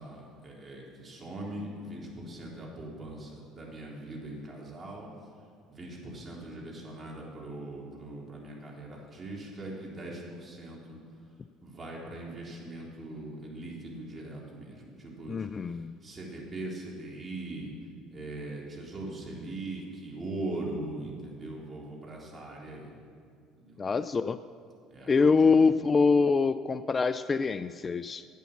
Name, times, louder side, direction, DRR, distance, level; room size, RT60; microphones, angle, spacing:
voice 1, 0.0-5.1 5.7-11.0 11.6-17.7 18.1-22.9 23.6-23.9 24.9-25.5, right 2 dB, 30° right, -3 dB, 3.6 m, -41 dB
voice 2, 15.3-15.9 23.8-24.4 25.1-28.3, left 4 dB, 30° left, 14 dB, 0.3 m, -24 dB
11.5 x 8.3 x 7.1 m, 2.2 s
hypercardioid pair, 60°, 0 cm